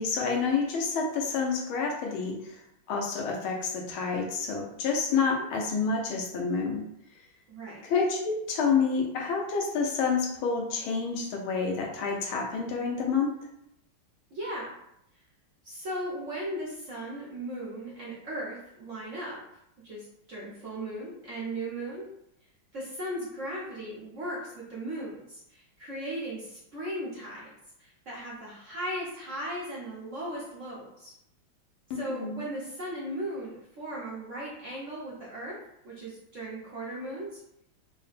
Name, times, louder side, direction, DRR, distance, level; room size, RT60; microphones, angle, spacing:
voice 1, 0.0-2.6 2.9-6.8 7.8-13.3 31.9-32.5, left 5 dB, 85° left, 0 dB, 1.6 m, -28 dB
voice 2, 5.1-5.4 7.5-7.8 14.3-14.7 15.6-19.4 19.8-22.1 22.7-27.5 27.8-31.1 31.9-35.6 35.8-37.4, right 1 dB, 50° right, -7 dB, 1.0 m, -37 dB
4.1 x 2.1 x 4.0 m, 0.77 s
omnidirectional pair, 2.2 m